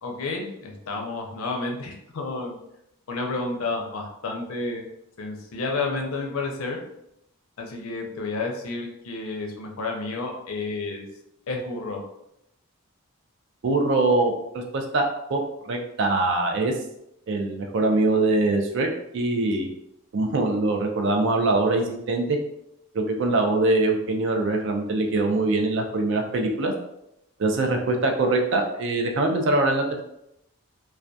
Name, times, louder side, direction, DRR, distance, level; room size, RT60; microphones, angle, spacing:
voice 1, 0.0-2.6 3.1-4.8 5.2-6.8 7.6-11.1 11.5-12.0, left 3 dB, 70° left, 2 dB, 0.5 m, -30 dB
voice 2, 13.6-14.3 14.7-16.7 17.3-19.7 20.1-22.4 22.9-26.7 27.4-30.0, right 2 dB, 55° right, 3 dB, 0.4 m, -23 dB
2.2 x 2.2 x 2.6 m, 0.80 s
head